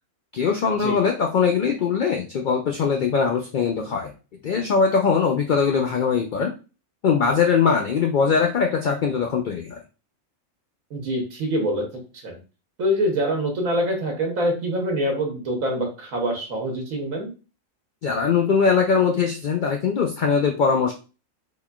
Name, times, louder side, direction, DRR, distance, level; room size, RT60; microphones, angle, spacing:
voice 1, 0.3-4.1 4.4-6.5 7.0-9.8 18.0-20.9, left 6 dB, 85° left, 2 dB, 0.4 m, -21 dB
voice 2, 10.9-11.8 12.2-12.4 12.8-17.3, equal, 85° right, 2 dB, 1.4 m, -25 dB
3.8 x 3.1 x 2.2 m, 0.33 s
omnidirectional pair, 1.4 m